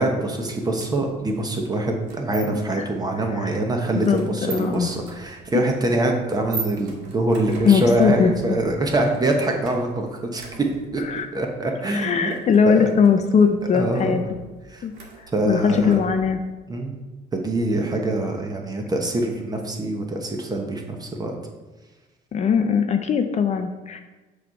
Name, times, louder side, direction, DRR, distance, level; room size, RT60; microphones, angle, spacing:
voice 1, 0.0-11.0 11.3-12.3 12.6-12.9 13.7-14.2 14.7-14.8 15.3-16.0 16.7-17.0 17.3-21.3, right 2 dB, 25° right, 2 dB, 1.0 m, -24 dB
sound 1, 0.8-16.5, right 4 dB, 85° right, 1.4 m, -41 dB
voice 2, 4.0-4.9 7.6-8.6 11.1-11.3 11.9-14.2 14.8-14.9 15.5-16.4 22.3-24.0, left 6 dB, 45° left, 7 dB, 0.5 m, -20 dB
6.7 x 3.2 x 5.5 m, 1.2 s
cardioid pair, 110°, 17 cm